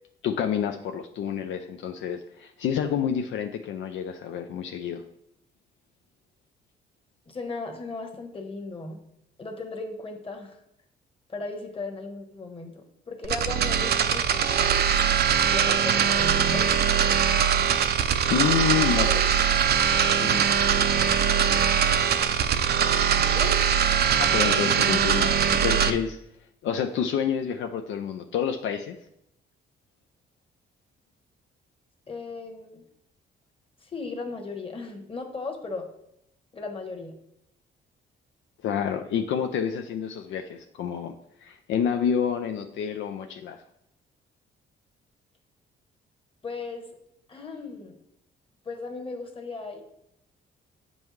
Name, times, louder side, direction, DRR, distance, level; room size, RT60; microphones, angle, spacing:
voice 1, 0.2-5.0 18.3-19.2 20.1-20.4 24.2-26.2 26.6-29.0 38.6-41.1 41.4-43.6, left 8 dB, 70° left, 5 dB, 0.5 m, -28 dB
voice 2, 7.3-9.0 9.4-10.6 11.3-14.5 15.5-16.8 18.7-19.3 23.2-23.6 32.1-32.8 33.8-35.9 36.5-37.1 46.4-46.9 47.3-48.0 48.6-49.8, left 3 dB, 25° left, 4 dB, 1.3 m, -36 dB
sound 1, 13.2-25.9, right 8 dB, 55° right, 0.5 m, -22 dB
7.7 x 5.3 x 3.1 m, 0.77 s
cardioid pair, 90°, 20 cm